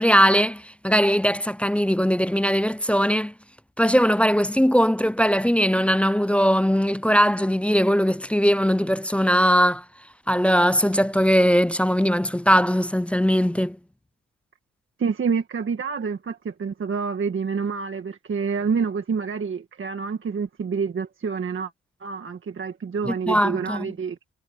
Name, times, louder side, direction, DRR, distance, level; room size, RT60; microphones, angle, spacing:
voice 1, 0.0-3.3 3.8-9.8 10.3-13.8 23.0-23.9, equal, 5° left, 0.3 m, -20 dB
voice 2, 15.0-21.7 22.0-24.2, right 5 dB, 40° right, 1.9 m, -27 dB
cardioid pair, 90°, 30 cm